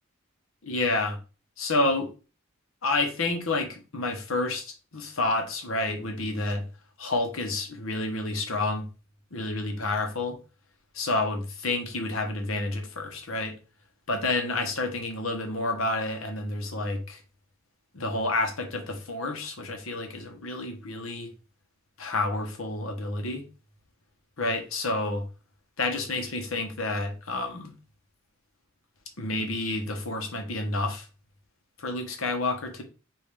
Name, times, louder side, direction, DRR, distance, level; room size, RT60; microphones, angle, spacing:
voice 1, 0.7-1.2 1.6-2.1 2.8-6.6 7.0-8.9 9.3-10.4 10.9-13.6 14.1-17.2 17.9-21.3 22.0-23.4 24.4-25.2 25.8-27.7 29.2-31.1 31.8-32.8, left 2 dB, 75° left, 1.1 m, -29 dB
5.3 x 2.7 x 3.3 m
head